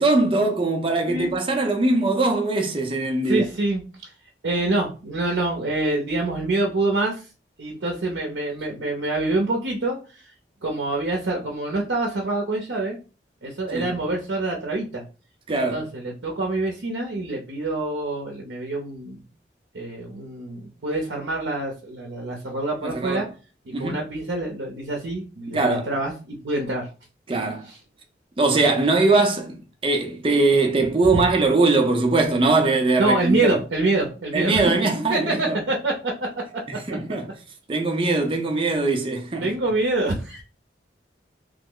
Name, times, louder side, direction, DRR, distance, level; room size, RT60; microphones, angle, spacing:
voice 1, 0.0-3.4 13.7-13.9 15.5-15.8 22.8-23.3 23.7-24.0 25.5-25.9 27.3-27.7 28.4-33.6 34.3-35.6 36.7-37.3 37.7-39.5, right 3 dB, 30° right, 0.5 m, -21 dB
voice 2, 3.2-3.8 4.4-7.2 7.6-10.3 10.6-13.0 13.4-15.0 15.5-19.2 19.7-23.3 23.8-26.9 27.7-27.8 28.6-28.7 33.0-34.6 34.9-36.1 39.4-40.4, right 2 dB, 90° right, 0.6 m, -26 dB
3.1 x 2.0 x 3.7 m
head